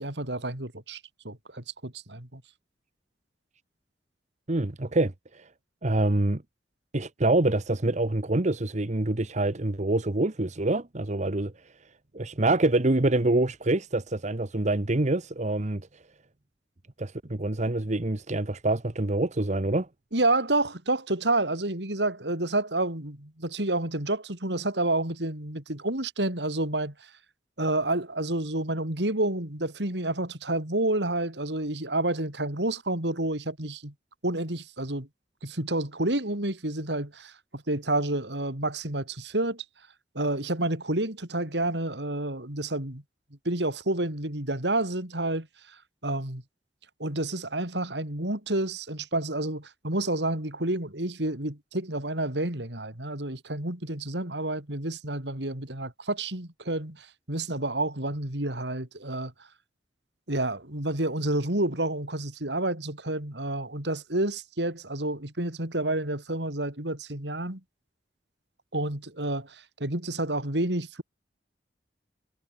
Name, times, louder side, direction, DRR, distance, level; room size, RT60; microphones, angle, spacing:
voice 1, 0.0-2.4 20.1-27.1 27.6-33.9 34.2-35.1 35.4-39.6 40.1-43.0 43.4-45.8 46.0-46.4 47.0-59.3 60.3-67.6 68.7-71.0, right 2 dB, 70° right, 4.5 m, -29 dB
voice 2, 4.5-5.5 5.8-6.4 6.9-11.5 12.1-15.8 17.0-19.9, right 2 dB, 40° right, 1.2 m, -26 dB
head